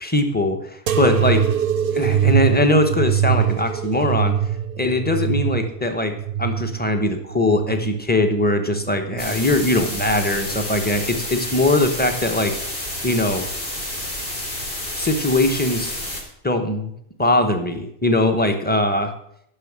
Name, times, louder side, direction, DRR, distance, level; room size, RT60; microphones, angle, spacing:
voice 1, 0.0-1.5 1.9-4.3 4.8-6.1 6.4-12.5 13.0-13.5 15.0-15.9 16.4-16.9 17.2-19.1, left 1 dB, 10° left, 6 dB, 1.0 m, -21 dB
sound 1, 0.9-8.1 8.6-9.4 10.1-10.7 11.6-11.7, right 9 dB, 65° right, 0.8 m, -23 dB
sound 2, 9.2-16.2, left 1 dB, 65° left, 2.8 m, -30 dB
10.0 x 6.3 x 7.3 m, 0.73 s
omnidirectional pair, 1.1 m